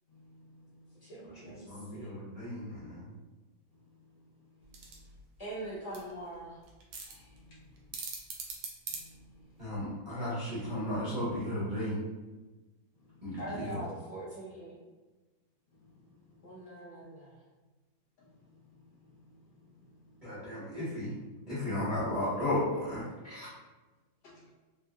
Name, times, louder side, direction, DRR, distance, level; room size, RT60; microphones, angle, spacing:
voice 1, 0.1-0.8 7.1-7.6 9.0-9.4 19.1-19.2 24.2-24.5, left 1 dB, 65° left, -7 dB, 1.4 m, -58 dB
voice 2, 1.0-2.1 5.4-6.6 13.4-14.8 16.4-17.4, right 1 dB, 25° left, -8 dB, 1.0 m, -42 dB
voice 3, 1.7-3.0 9.6-11.9 13.2-13.8 20.2-21.1 21.5-23.5, left 1 dB, 30° right, -12 dB, 1.1 m, -34 dB
sound 1, 4.6-9.8, right 4 dB, 75° right, 1.3 m, -44 dB
3.9 x 2.7 x 2.3 m, 1.2 s
omnidirectional pair, 2.2 m